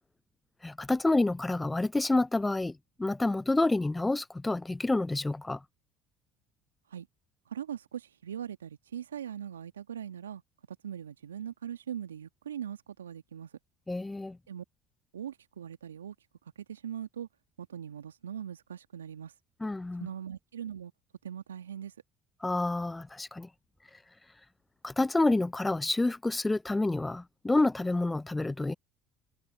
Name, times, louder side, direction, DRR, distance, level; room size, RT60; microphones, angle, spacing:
voice 1, 0.6-5.6 13.9-14.4 19.6-20.1 22.4-23.5 24.8-28.7, left 2 dB, 15° left, 0.4 m, -28 dB
voice 2, 7.5-10.4 10.7-13.5 14.5-14.6 15.1-16.1 16.6-17.3 17.6-19.3 20.0-20.9 21.2-21.9, right 9 dB, 85° right, 1.5 m, -40 dB
figure-of-eight pair, 60°, 0 cm